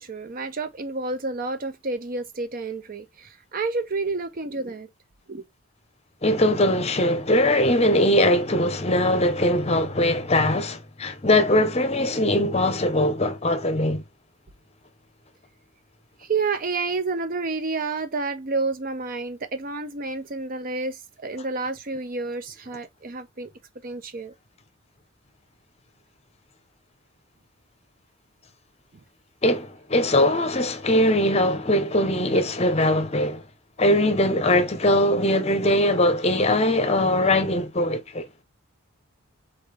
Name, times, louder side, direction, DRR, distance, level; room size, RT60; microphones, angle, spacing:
voice 1, 0.0-4.9 5.3-5.4 16.3-21.0 21.2-23.5 23.8-24.3, right 3 dB, 40° right, 0.6 m, -29 dB
voice 2, 6.2-14.0 29.4-33.4 33.8-38.3, left 1 dB, 30° left, 0.8 m, -21 dB
4.2 x 3.8 x 3.3 m
head